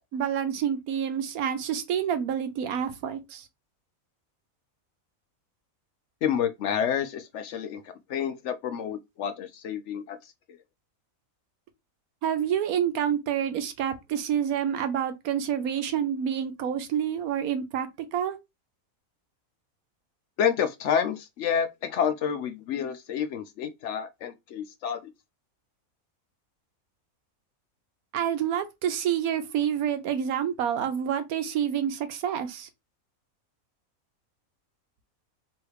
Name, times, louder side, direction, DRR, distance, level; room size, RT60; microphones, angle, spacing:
voice 1, 0.1-3.5 12.2-18.4 28.1-32.7, right 9 dB, 80° right, 1.2 m, -28 dB
voice 2, 6.2-10.3 20.4-25.1, left 8 dB, 65° left, 0.8 m, -29 dB
3.2 x 3.1 x 4.6 m
omnidirectional pair, 1.5 m